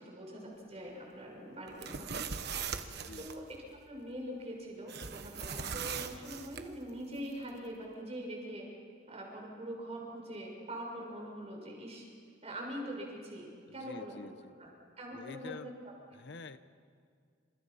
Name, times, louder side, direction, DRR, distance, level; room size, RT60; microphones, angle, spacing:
voice 1, 0.0-2.2 3.2-3.6 3.9-8.7 9.1-12.0 12.4-14.1 14.6-14.7 15.0-15.7, equal, 35° right, -1 dB, 6.4 m, -43 dB
sound 1, 1.7-3.4 4.9-6.6, right 6 dB, 55° right, 1.3 m, -40 dB
voice 2, 2.9-3.3 13.7-14.5 15.1-15.7 16.1-16.6, left 3 dB, 60° left, 12 dB, 0.8 m, -48 dB
28.0 x 27.5 x 5.7 m, 2.1 s
head